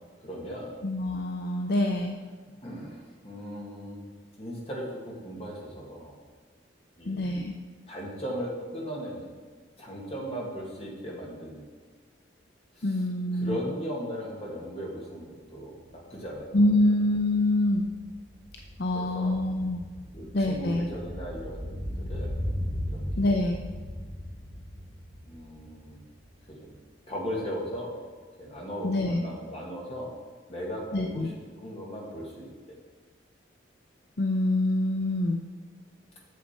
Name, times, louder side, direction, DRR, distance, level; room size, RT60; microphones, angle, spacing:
voice 1, 0.2-0.7 2.6-4.0 4.4-6.1 7.0-7.4 7.9-9.3 9.8-11.7 12.8-13.0 13.3-16.5 18.9-19.4 20.1-21.7 22.1-22.3 22.9-23.0 25.3-26.1 26.6-26.8 27.1-27.9 28.4-30.1 30.5-32.5, equal, 30° left, -3 dB, 1.9 m, -37 dB
voice 2, 0.8-2.2 7.1-7.6 12.8-13.6 16.5-17.9 18.8-19.8 20.3-20.9 23.2-23.6 28.8-29.2 30.9-31.3 34.2-35.4, left 1 dB, 55° left, 2 dB, 0.5 m, -25 dB
sound 1, 16.5-26.6 26.9-27.0, equal, 5° right, 2.7 m, -37 dB
8.3 x 6.8 x 4.4 m, 1.5 s
head